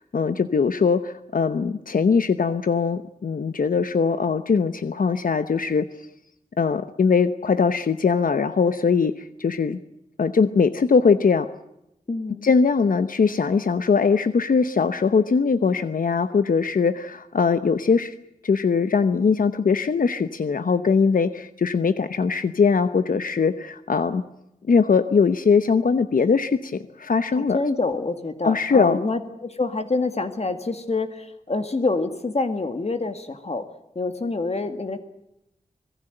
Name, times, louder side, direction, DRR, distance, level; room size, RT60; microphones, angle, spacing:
voice 1, 0.0-5.9 6.6-9.8 10.2-11.5 12.4-18.1 18.4-24.2 24.7-27.6 28.4-29.0, left 5 dB, 75° left, 11 dB, 0.9 m, -21 dB
voice 2, 12.1-12.5 27.3-33.7 34.0-35.0, left 3 dB, 50° left, 8 dB, 1.9 m, -26 dB
26.0 x 18.5 x 7.9 m, 0.86 s
wide cardioid pair, 75°, 14 cm